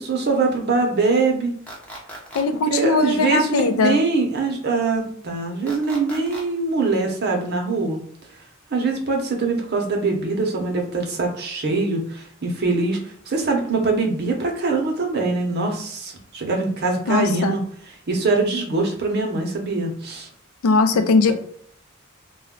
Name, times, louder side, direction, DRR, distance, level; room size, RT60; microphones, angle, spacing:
voice 1, 0.0-1.5 2.7-8.0 8.7-13.0 13.3-17.6 18.1-20.3 20.9-21.3, right 3 dB, 50° right, 2 dB, 0.7 m, -23 dB
sound 1, 1.7-2.4 5.7-6.4, right 1 dB, 5° left, 0.6 m, -37 dB
voice 2, 2.3-4.0 17.1-17.6 20.6-21.3, left 4 dB, 85° left, 9 dB, 0.4 m, -19 dB
2.2 x 2.2 x 3.6 m, 0.63 s
head